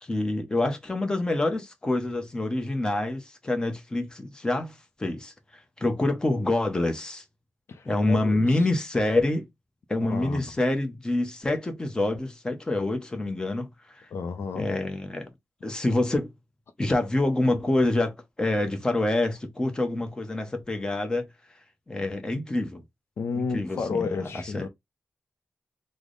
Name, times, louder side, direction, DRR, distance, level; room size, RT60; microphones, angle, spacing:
voice 1, 0.0-7.2 7.8-9.5 9.9-14.1 14.5-15.3 15.6-16.3 16.8-21.2 21.9-22.8 23.3-24.7, left 2 dB, 15° left, 0.7 m, -27 dB
voice 2, 7.7-8.5 10.1-10.5 14.1-14.7 23.2-24.7, left 4 dB, 65° left, 0.5 m, -31 dB
3.3 x 2.1 x 3.8 m
wide cardioid pair, 145°, 5 cm